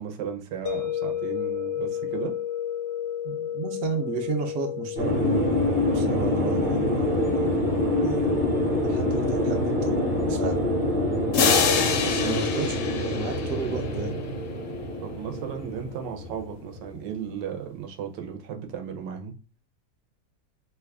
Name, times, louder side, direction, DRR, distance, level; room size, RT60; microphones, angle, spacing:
voice 1, 0.0-2.4 11.6-12.5 15.0-19.3, right 8 dB, 90° right, 1.3 m, -35 dB
sound 1, 0.7-15.6, left 10 dB, 90° left, 1.3 m, -35 dB
voice 2, 3.2-8.3 8.8-10.7 12.0-14.2, right 5 dB, 60° right, 1.0 m, -33 dB
sound 2, 5.0-17.2, left 1 dB, 35° right, 0.9 m, -26 dB
sound 3, 11.3-14.0, left 6 dB, 70° left, 0.8 m, -25 dB
3.1 x 2.3 x 3.4 m
omnidirectional pair, 1.8 m